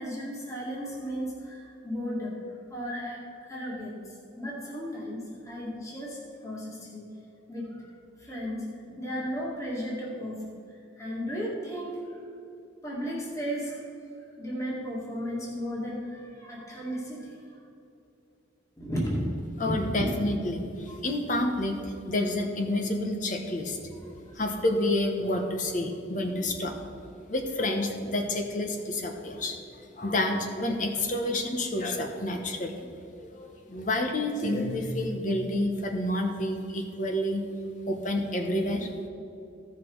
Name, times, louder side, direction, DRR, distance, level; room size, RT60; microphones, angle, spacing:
voice 1, 0.0-7.1 7.5-10.6 10.9-12.2 12.8-13.9 14.4-17.6 18.8-19.3 19.7-20.1 20.9-21.0 23.9-24.4, equal, 15° left, -5 dB, 2.0 m, -35 dB
voice 2, 19.6-23.8 24.4-26.7 27.3-29.6 30.0-32.7 33.2-37.4 37.9-38.9, left 1 dB, 40° left, 4 dB, 1.1 m, -29 dB
15.5 x 6.0 x 4.6 m, 2.8 s
head